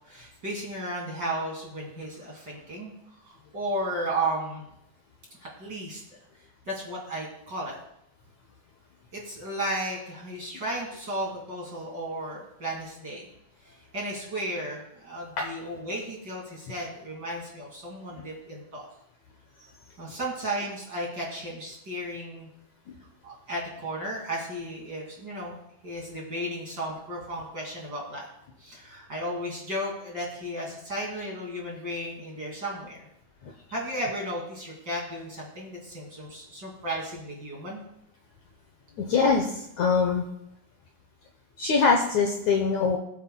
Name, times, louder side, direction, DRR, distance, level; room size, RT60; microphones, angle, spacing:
voice 1, 0.0-2.9 3.3-4.7 5.4-6.2 6.7-7.8 9.1-13.3 13.6-18.9 20.0-22.5 23.2-25.5 25.8-28.2 28.6-33.1 33.7-37.8, right 1 dB, 30° right, -3 dB, 2.6 m, -34 dB
voice 2, 39.0-40.2 41.6-43.0, left 5 dB, 70° left, 2 dB, 1.9 m, -23 dB
21.0 x 8.1 x 2.2 m, 0.80 s
omnidirectional pair, 4.2 m